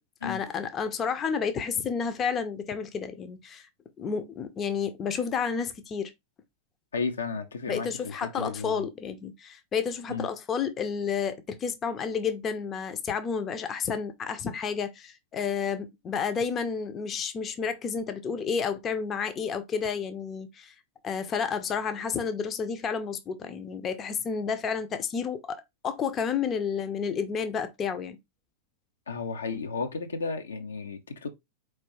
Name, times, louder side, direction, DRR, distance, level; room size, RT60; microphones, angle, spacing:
voice 1, 0.2-3.7 4.0-6.1 7.7-20.7 21.0-28.2, left 6 dB, 25° left, 0.6 m, -31 dB
voice 2, 6.9-8.8 10.1-10.3 29.1-31.3, left 4 dB, 70° left, 0.6 m, -33 dB
4.4 x 3.2 x 3.0 m
figure-of-eight pair, 90°, 0 cm